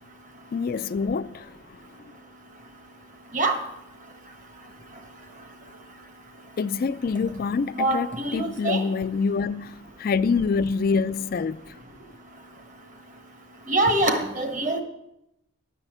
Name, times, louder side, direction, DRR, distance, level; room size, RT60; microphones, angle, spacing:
voice 1, 0.5-1.8 6.6-11.6, left 5 dB, 45° left, 0.3 m, -26 dB
voice 2, 7.7-8.8 13.7-14.8, right 2 dB, 35° right, 1.3 m, -24 dB
10.5 x 5.6 x 8.0 m
head